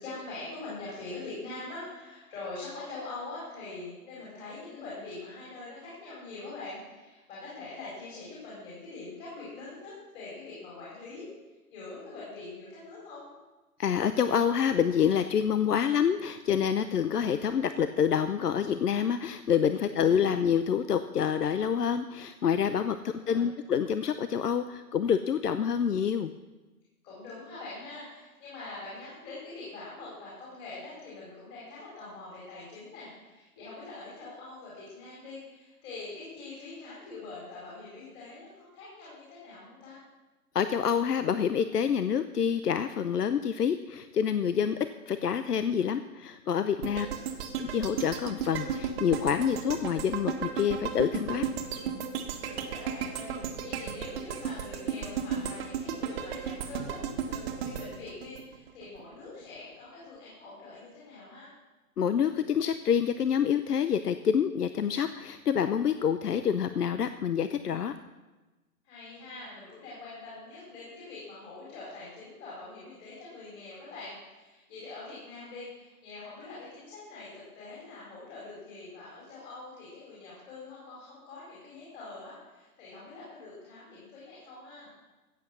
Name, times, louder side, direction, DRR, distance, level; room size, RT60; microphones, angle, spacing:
voice 1, 0.0-11.3 11.7-13.3 19.7-20.2 22.9-23.5 27.0-40.0 46.8-47.3 52.4-57.0 57.3-61.5 68.8-84.9, left 3 dB, 25° left, -7 dB, 4.7 m, -44 dB
voice 2, 13.8-26.3 40.5-44.8 45.1-47.1 47.6-51.5 62.0-67.9, left 8 dB, 85° left, 11 dB, 0.8 m, -27 dB
sound 1, 46.8-59.0 59.4-59.5, right 7 dB, 40° right, 1.5 m, -34 dB
14.5 x 8.4 x 6.2 m, 1.2 s
hypercardioid pair, 140°, 46 cm